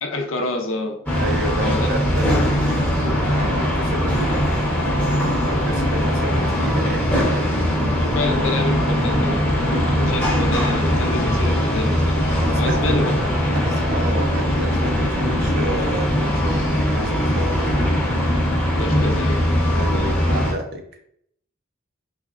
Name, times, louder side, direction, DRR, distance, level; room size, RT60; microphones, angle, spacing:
voice 1, 0.0-1.0 1.6-1.9 8.0-13.1 15.3-15.5 18.8-19.6 19.9-20.4, left 2 dB, 70° left, 4 dB, 0.5 m, -28 dB
sound 1, 1.1-20.5, equal, 10° left, 0.8 m, -20 dB
voice 2, 1.2-4.8 5.4-7.1 12.4-13.1 13.5-17.7 19.7-20.8, right 1 dB, 50° right, 4 dB, 0.6 m, -30 dB
3.9 x 3.1 x 2.4 m, 0.68 s
head